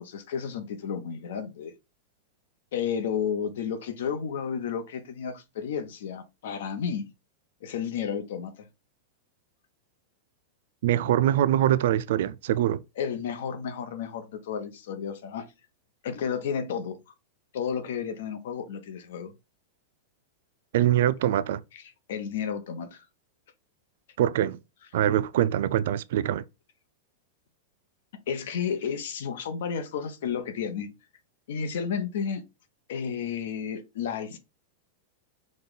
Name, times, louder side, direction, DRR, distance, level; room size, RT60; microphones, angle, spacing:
voice 1, 0.0-1.7 2.7-7.1 7.6-8.7 13.0-15.5 16.0-17.1 17.5-19.3 22.1-23.0 28.3-30.9 31.5-32.4 32.9-34.4, left 7 dB, 75° left, 1.0 m, -32 dB
voice 2, 10.8-12.8 20.7-21.6 24.2-24.6 24.9-26.4, right 11 dB, 65° right, 0.4 m, -23 dB
5.2 x 2.5 x 3.9 m
supercardioid pair, 160°, 0 cm